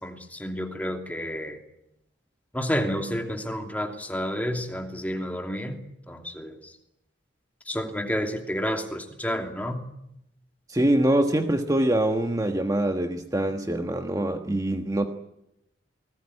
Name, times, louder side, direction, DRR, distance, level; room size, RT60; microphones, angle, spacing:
voice 1, 0.0-1.6 2.5-5.8 6.1-6.7 7.7-9.8, equal, 10° left, 4 dB, 2.7 m, -30 dB
voice 2, 10.7-15.1, right 1 dB, 20° right, 5 dB, 1.4 m, -24 dB
29.0 x 20.0 x 9.9 m, 0.85 s
head